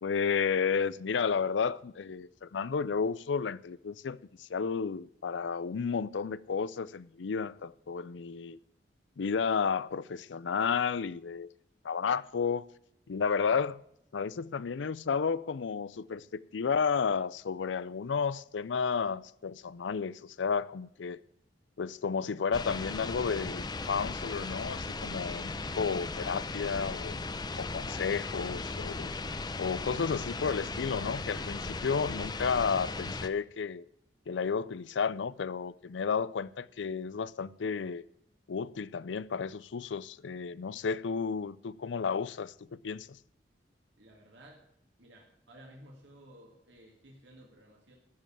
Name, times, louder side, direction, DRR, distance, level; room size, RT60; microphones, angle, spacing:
voice 1, 0.0-8.6 9.2-11.5 11.8-12.6 13.1-13.8 14.1-21.2 21.8-27.1 27.6-29.1 29.6-33.8 34.3-38.0 38.5-43.1, left 6 dB, 90° left, 0.5 m, -32 dB
sound 1, 22.5-33.3, left 3 dB, 25° left, 0.6 m, -37 dB
voice 2, 44.0-44.6 45.0-48.0, right 1 dB, 80° right, 2.3 m, -55 dB
14.0 x 5.3 x 8.7 m
head